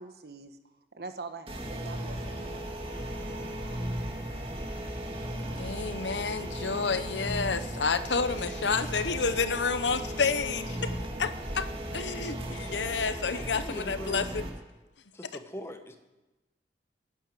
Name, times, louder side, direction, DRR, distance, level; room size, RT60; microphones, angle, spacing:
voice 1, 0.0-2.7, right 3 dB, 60° right, 8 dB, 1.3 m, -44 dB
sound 1, 1.5-14.5, right 1 dB, 30° right, 2.2 m, -36 dB
voice 2, 5.6-10.9 11.2-14.5, left 5 dB, 80° left, 12 dB, 0.9 m, -30 dB
voice 3, 13.3-14.3 15.1-16.0, equal, 15° left, 6 dB, 1.3 m, -41 dB
11.5 x 11.0 x 9.5 m, 1.0 s
head